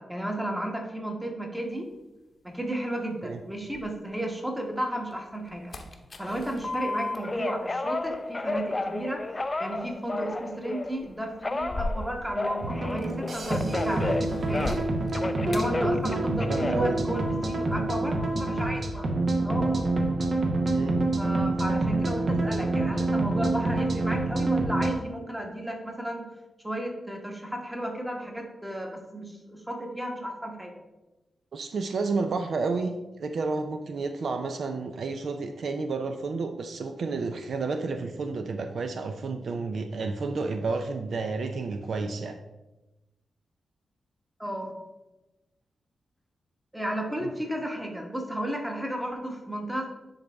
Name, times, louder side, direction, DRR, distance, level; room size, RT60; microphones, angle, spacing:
voice 1, 0.0-1.9 2.4-5.7 6.2-9.2 9.6-14.1 14.5-14.8 15.4-19.1 19.4-19.8 21.2-26.3 26.6-30.7 44.4-44.7 46.7-49.8, right 1 dB, 5° right, 1 dB, 1.2 m, -33 dB
sound 1, 1.7-4.5 4.9-16.7 16.9-17.8, left 1 dB, 40° left, 0.8 m, -42 dB
Telephone, 6.6-11.0 11.4-14.9 15.1-17.6 18.1-18.7, left 2 dB, 25° left, 0.4 m, -32 dB
sound 2, 12.6-24.9, right 2 dB, 50° right, 1.0 m, -27 dB
voice 2, 16.0-17.0 20.7-21.0 31.5-42.4 47.2-47.3, right 4 dB, 65° right, 6 dB, 0.5 m, -31 dB
9.9 x 4.0 x 3.4 m, 1.0 s
wide cardioid pair, 105°, 0 cm